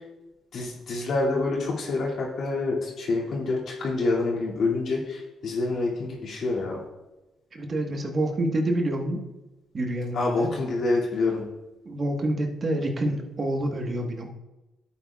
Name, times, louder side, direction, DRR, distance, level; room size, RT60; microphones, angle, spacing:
voice 1, 0.5-6.8 10.1-11.5, left 3 dB, 60° left, -4 dB, 2.5 m, -27 dB
voice 2, 7.5-9.2 9.7-10.5 11.8-14.3, right 1 dB, 40° right, 3 dB, 1.4 m, -27 dB
11.5 x 8.5 x 2.4 m, 1.0 s
cardioid pair, 90°, 0 cm